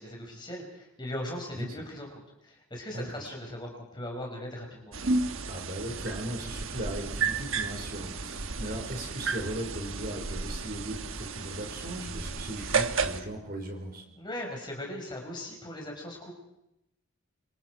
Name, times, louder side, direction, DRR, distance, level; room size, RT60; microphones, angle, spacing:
voice 1, 0.0-5.0 14.2-16.3, left 1 dB, 20° left, 1 dB, 5.4 m, -39 dB
voice 2, 2.9-3.3 5.4-14.0, right 1 dB, 45° right, 2 dB, 5.0 m, -38 dB
sound 1, 4.9-13.2, right 4 dB, 70° right, 1.2 m, -32 dB
27.0 x 26.0 x 4.7 m, 0.85 s
head